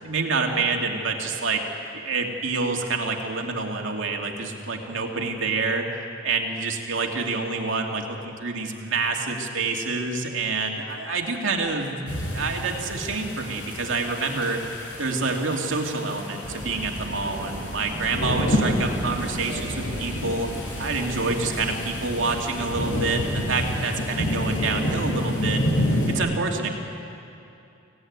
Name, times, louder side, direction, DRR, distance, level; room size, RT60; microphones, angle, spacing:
voice 1, 0.0-1.6 1.9-5.9 6.2-14.6 15.0-20.5 20.8-25.6 26.1-26.7, right 3 dB, 70° right, 1 dB, 2.6 m, -27 dB
sound 1, 12.1-26.1, left 1 dB, 70° left, 5.6 m, -29 dB
sound 2, 16.4-23.2, right 1 dB, 35° right, 1.2 m, -37 dB
24.5 x 17.0 x 9.6 m, 2.7 s
head